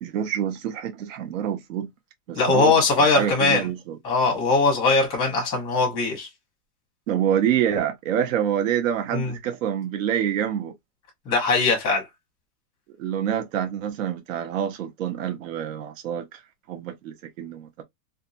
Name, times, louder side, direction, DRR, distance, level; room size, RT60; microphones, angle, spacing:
voice 1, 0.0-1.9 2.3-4.0 7.1-10.7 12.9-16.4 16.7-17.8, right 9 dB, 55° right, 0.6 m, -27 dB
voice 2, 2.4-3.7 4.0-6.3 9.1-9.3 11.3-12.0, left 3 dB, 10° left, 0.8 m, -21 dB
2.6 x 2.3 x 2.5 m
supercardioid pair, 175°, 49 cm